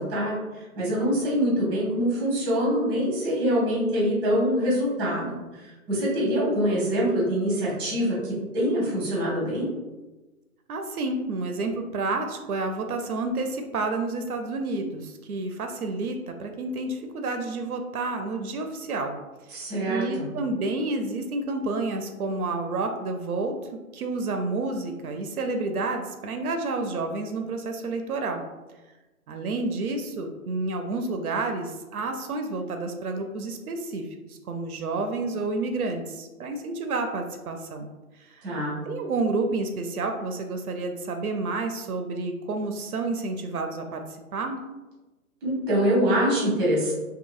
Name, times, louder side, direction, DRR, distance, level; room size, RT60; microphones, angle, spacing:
voice 1, 0.0-9.7 19.5-20.3 38.4-38.7 45.4-46.9, equal, 15° right, -5 dB, 0.7 m, -25 dB
voice 2, 10.7-19.1 19.5-19.6 19.9-28.4 29.3-37.9 38.2-38.5 38.8-44.0 44.3-44.6, right 3 dB, 80° right, 5 dB, 0.5 m, -30 dB
2.7 x 2.6 x 2.4 m, 1.1 s
figure-of-eight pair, 140°, 43 cm